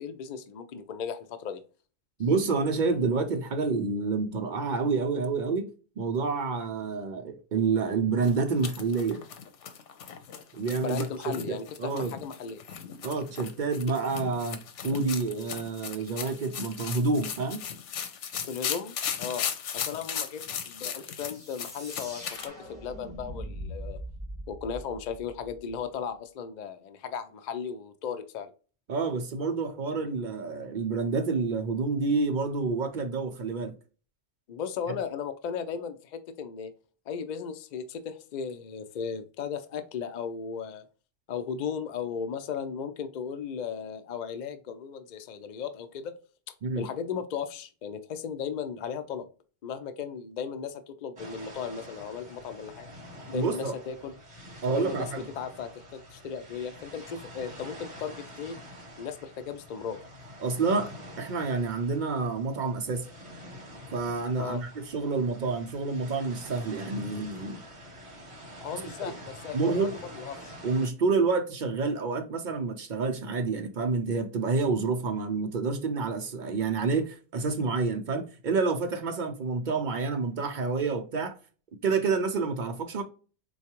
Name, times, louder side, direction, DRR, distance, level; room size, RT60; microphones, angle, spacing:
voice 1, 0.0-1.6 10.8-12.6 18.4-18.9 19.2-19.5 19.7-24.0 24.5-28.5 34.5-36.7 37.1-40.9 41.3-46.2 46.8-49.3 49.6-52.9 53.3-54.1 54.7-55.1 55.4-58.6 59.0-60.0 64.3-64.6 68.6-70.6, left 7 dB, 60° left, 0.5 m, -36 dB
voice 2, 2.2-5.7 6.0-9.2 10.5-12.1 13.0-14.6 14.8-17.6 28.9-33.7 46.6-46.8 53.3-53.8 54.6-55.2 60.4-63.1 63.9-67.6 69.1-69.2 69.5-70.0 70.6-81.4 81.8-83.0, right 4 dB, 55° right, 0.6 m, -28 dB
sound 1, 8.2-22.5, left 8 dB, 85° left, 0.9 m, -37 dB
sound 2, 21.2-25.8, equal, 30° left, 1.6 m, -42 dB
sound 3, 51.2-70.9, equal, 30° right, 1.1 m, -46 dB
4.4 x 2.3 x 2.8 m
omnidirectional pair, 1.2 m